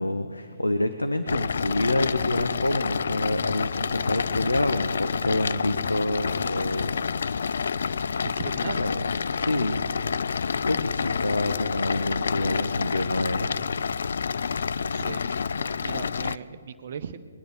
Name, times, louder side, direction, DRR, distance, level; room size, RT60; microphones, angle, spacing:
voice 1, 0.0-7.3 8.8-9.8 10.6-13.6, left 1 dB, 80° left, 9 dB, 0.7 m, -27 dB
sound 1, 1.3-16.4, left 6 dB, 60° left, 0.3 m, -28 dB
voice 2, 8.2-8.9 14.1-14.3 14.8-17.2, right 7 dB, 50° right, 11 dB, 0.7 m, -38 dB
21.0 x 10.0 x 6.6 m, 2.2 s
figure-of-eight pair, 130°, 0 cm